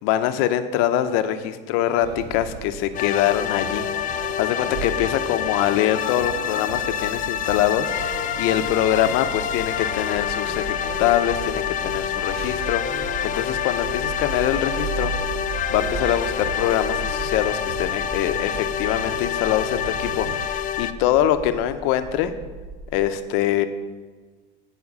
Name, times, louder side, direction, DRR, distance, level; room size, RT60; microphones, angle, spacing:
voice 1, 0.0-15.1 15.7-22.3 22.9-23.7, left 11 dB, 80° left, 10 dB, 0.7 m, -24 dB
sound 1, 2.0-20.5, right 7 dB, 50° right, 0.6 m, -36 dB
sound 2, 2.9-20.9, left 10 dB, 40° left, 0.5 m, -27 dB
sound 3, 11.5-23.1, equal, 25° right, 1.1 m, -41 dB
9.7 x 5.1 x 6.3 m, 1.4 s
supercardioid pair, 110°, 21 cm